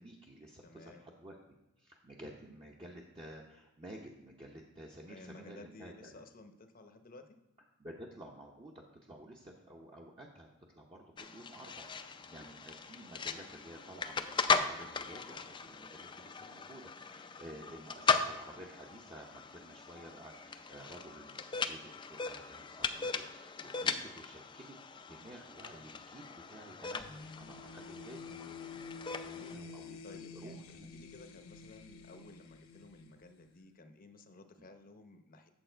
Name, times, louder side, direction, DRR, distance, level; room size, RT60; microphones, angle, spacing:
voice 1, 0.0-1.4 1.8-5.9 7.8-10.5 10.7-24.8 25.1-30.9 34.6-34.7, right 1 dB, 25° right, -2 dB, 0.8 m, -52 dB
voice 2, 0.6-1.1 5.1-7.4 29.1-29.7 30.0-35.5, left 2 dB, 40° left, 7 dB, 0.8 m, -55 dB
sound 1, 11.2-29.5, left 5 dB, 20° left, 0.4 m, -38 dB
sound 2, 27.0-33.7, left 5 dB, 70° left, 0.8 m, -49 dB
8.9 x 7.2 x 4.5 m, 0.98 s
head